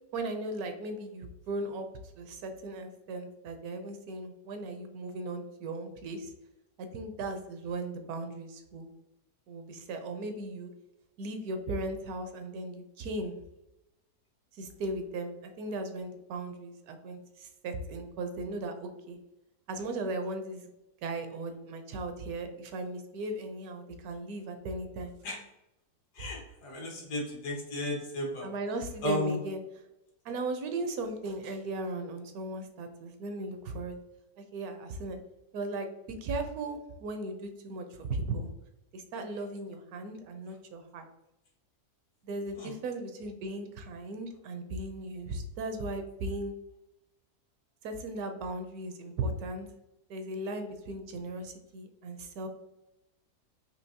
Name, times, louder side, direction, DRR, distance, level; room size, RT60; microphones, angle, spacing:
voice 1, 0.1-1.9 2.2-6.3 6.8-8.9 9.5-10.7 11.2-13.3 14.6-19.2 19.7-20.7 21.0-25.1 26.2-26.3 28.4-29.6 30.2-34.0 34.4-35.2 35.5-38.5 38.9-41.0 42.2-46.5 47.8-49.7 50.1-52.5, right 2 dB, 75° right, 6 dB, 1.0 m, -37 dB
voice 2, 26.2-28.5 29.0-29.3 42.6-42.7, left 1 dB, 80° left, -1 dB, 1.7 m, -34 dB
4.5 x 2.8 x 2.7 m, 0.91 s
omnidirectional pair, 1.7 m